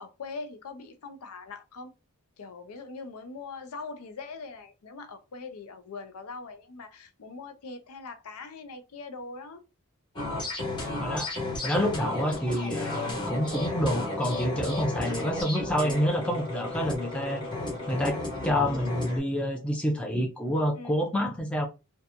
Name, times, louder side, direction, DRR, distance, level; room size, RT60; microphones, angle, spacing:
voice 1, 0.0-1.9 2.4-9.6 15.8-16.0 20.7-20.9, left 4 dB, 85° left, 0.5 m, -42 dB
sound 1, 10.2-19.2, left 2 dB, 20° left, 1.0 m, -33 dB
voice 2, 11.0-11.3 11.6-17.4 17.9-21.7, equal, 5° left, 0.4 m, -28 dB
2.8 x 2.2 x 2.5 m
head